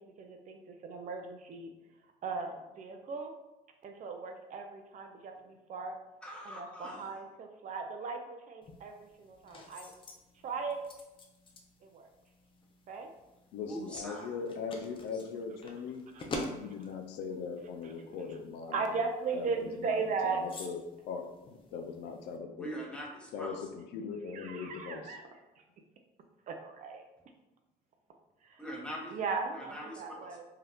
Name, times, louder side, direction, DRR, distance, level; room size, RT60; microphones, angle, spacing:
voice 1, 0.0-1.7 2.2-3.3 3.8-6.0 6.5-9.9 10.4-10.8 11.8-12.1 12.9-13.1 16.1-16.5 18.7-20.4 24.3-25.2 26.5-27.0 28.5-28.6 29.1-30.4, right 4 dB, 50° right, 4 dB, 0.4 m, -37 dB
voice 2, 6.2-7.2 13.6-14.3 15.1-15.2 22.6-23.6 28.6-29.2 29.5-30.4, equal, 5° left, -3 dB, 0.8 m, -43 dB
sound 1, 8.6-22.4, left 2 dB, 30° left, 0.5 m, -48 dB
voice 3, 13.5-16.0 16.4-18.9 19.3-22.7 23.3-25.2, left 5 dB, 85° left, 5 dB, 0.4 m, -40 dB
2.7 x 2.3 x 3.4 m, 0.99 s
cardioid pair, 110°, 17 cm